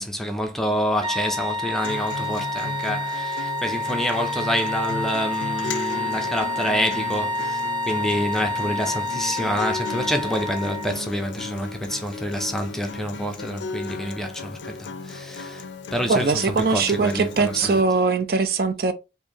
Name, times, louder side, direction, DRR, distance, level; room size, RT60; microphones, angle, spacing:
voice 1, 0.0-17.8, equal, ahead, 0.5 m, -27 dB
sound 1, 1.0-11.0, left 2 dB, 30° right, 1.5 m, -28 dB
Acoustic guitar, 1.8-17.8, left 3 dB, 85° left, 0.4 m, -35 dB
voice 2, 16.1-18.9, right 4 dB, 55° right, 0.5 m, -21 dB
4.4 x 2.6 x 2.8 m
head